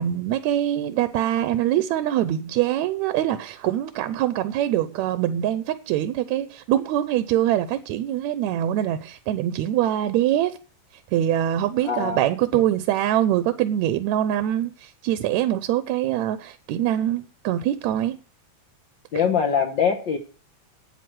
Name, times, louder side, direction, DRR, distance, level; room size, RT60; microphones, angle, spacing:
voice 1, 0.0-10.6 11.1-18.2, right 12 dB, 80° right, 1.9 m, -24 dB
voice 2, 11.8-12.2 19.1-20.2, left 7 dB, 60° left, 1.3 m, -22 dB
9.3 x 9.1 x 6.2 m
omnidirectional pair, 3.4 m